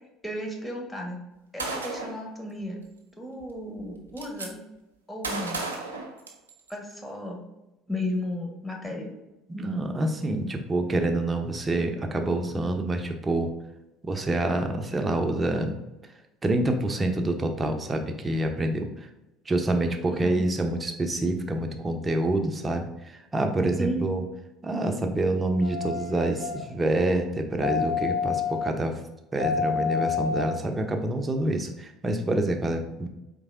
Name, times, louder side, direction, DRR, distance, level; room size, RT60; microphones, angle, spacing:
voice 1, 0.2-1.2 1.5-2.8 3.2-4.6 5.1-5.7 6.7-7.4 7.9-9.1 20.1-20.4 23.8-24.2, left 1 dB, 5° left, 0 dB, 0.9 m, -34 dB
Gunshot gunfire, 1.6-2.2 3.4-3.5 3.8-4.5 5.2-6.7, right 3 dB, 85° right, 0.4 m, -33 dB
voice 2, 9.5-13.5 14.0-15.8 16.4-18.9 19.5-24.2 24.6-29.0 29.3-33.1, right 1 dB, 25° right, 5 dB, 0.6 m, -27 dB
sound 1, 25.6-26.7 27.6-28.7 29.4-30.6 31.2-31.3, left 6 dB, 70° left, 0.3 m, -28 dB
4.3 x 3.3 x 2.5 m, 0.96 s
figure-of-eight pair, 65°, 0 cm